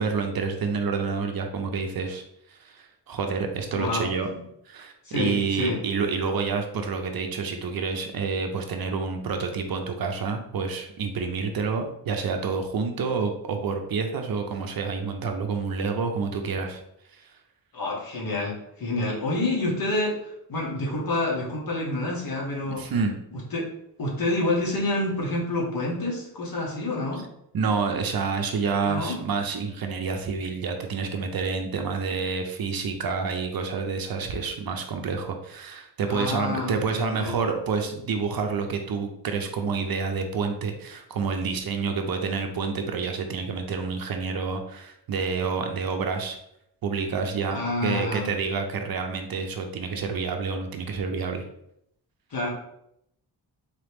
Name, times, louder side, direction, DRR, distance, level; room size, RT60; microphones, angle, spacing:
voice 1, 0.0-4.3 4.7-16.8 17.1-17.3 22.7-23.1 27.5-46.4 46.8-51.4, right 5 dB, 60° right, 5 dB, 0.6 m, -28 dB
voice 2, 3.7-4.1 4.3-4.4 5.0-5.8 17.7-22.9 23.3-23.7 24.0-27.2 28.8-29.1 36.1-37.4 47.5-48.3 52.3-52.5, left 2 dB, 55° left, -4 dB, 1.4 m, -28 dB
4.0 x 2.9 x 3.4 m, 0.76 s
wide cardioid pair, 155°, 42 cm